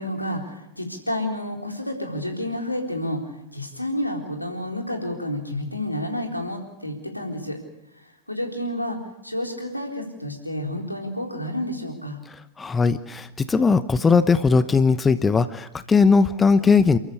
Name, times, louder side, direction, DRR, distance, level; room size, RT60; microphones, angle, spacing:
voice 1, 0.0-3.2 3.5-7.6 8.3-9.0 9.2-12.2, left 1 dB, 85° left, 3 dB, 4.0 m, -30 dB
voice 2, 12.3-17.0, left 4 dB, 15° left, 14 dB, 1.0 m, -19 dB
29.0 x 13.5 x 8.4 m, 0.84 s
figure-of-eight pair, 90°, 0 cm